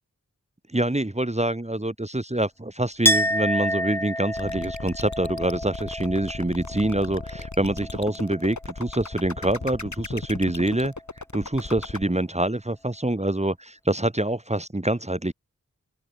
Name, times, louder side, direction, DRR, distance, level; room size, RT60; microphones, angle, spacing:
voice 1, 0.7-15.3, right 1 dB, 20° right, 2.2 m, -26 dB
Chink clink, 3.0-8.6 8.9-9.7, equal, 5° left, 6.5 m, -29 dB
sound 1, 4.3-12.0, left 3 dB, 60° left, 6.9 m, -36 dB
open air
wide cardioid pair, 60°, 32 cm